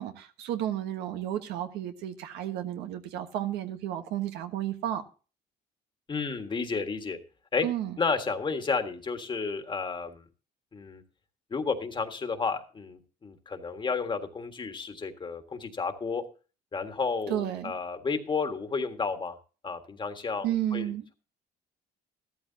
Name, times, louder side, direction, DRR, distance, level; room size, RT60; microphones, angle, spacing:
voice 1, 0.0-5.0 7.6-8.0 17.3-17.7 20.4-21.0, right 12 dB, 90° right, 1.3 m, -32 dB
voice 2, 6.1-7.2 7.5-7.7 8.0-10.2 10.7-11.0 11.5-16.2 16.7-19.3 19.6-20.9, left 4 dB, 30° left, 1.7 m, -32 dB
14.0 x 13.0 x 2.8 m
cardioid pair, 110°, 17 cm